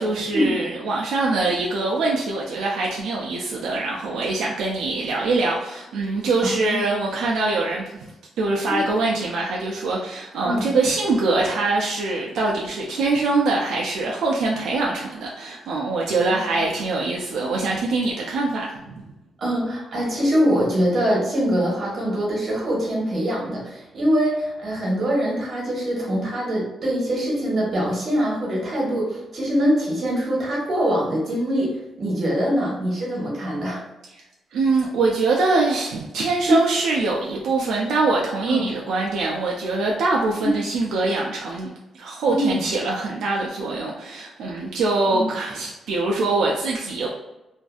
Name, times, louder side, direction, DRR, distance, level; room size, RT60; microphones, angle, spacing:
voice 1, 0.0-18.9 34.5-47.1, right 3 dB, 85° right, -2 dB, 0.4 m, -23 dB
voice 2, 6.4-6.8 8.7-8.8 10.4-10.7 16.6-16.7 19.4-33.8 36.5-36.6 38.4-38.7 40.4-40.6 42.3-42.7 45.1-45.3, equal, 50° right, -4 dB, 1.0 m, -23 dB
2.5 x 2.4 x 2.3 m, 0.97 s
cardioid pair, 130°, 0 cm